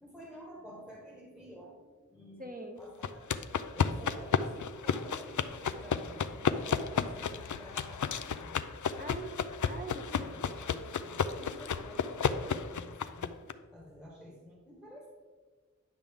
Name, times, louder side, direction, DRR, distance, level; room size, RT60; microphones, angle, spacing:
voice 1, 0.0-3.3 3.7-8.7 10.1-13.4 13.7-15.1, equal, ahead, -2 dB, 1.5 m, -50 dB
voice 2, 2.4-2.8 9.0-10.3, right 2 dB, 25° right, 2 dB, 1.4 m, -43 dB
sound 1, 3.0-13.5, left 6 dB, 70° left, 0.5 m, -33 dB
10.0 x 6.2 x 3.6 m, 1.4 s
wide cardioid pair, 45°, 31 cm